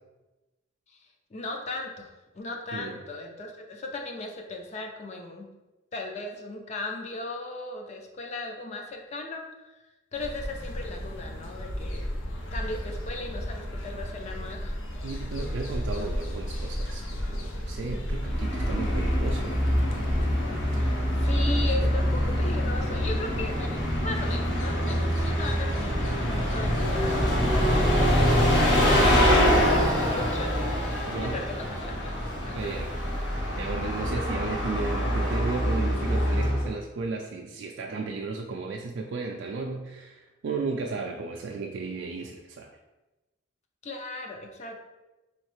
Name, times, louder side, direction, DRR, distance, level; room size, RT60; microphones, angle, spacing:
voice 1, 1.3-2.1 2.3-5.5 5.9-9.7 10.1-12.1 12.5-14.8 20.8-32.1 32.4-32.7 43.8-44.8, left 2 dB, 35° left, 2 dB, 0.5 m, -37 dB
sound 1, 10.1-27.5, equal, 90° left, 0.7 m, -35 dB
voice 2, 15.0-19.5 21.4-21.9 31.1-31.4 32.5-32.9 33.6-42.7, right 3 dB, 65° right, 1 dB, 0.3 m, -34 dB
Bus, 18.2-36.7, equal, 65° left, 1.4 m, -25 dB
3.9 x 3.2 x 3.1 m, 1.1 s
head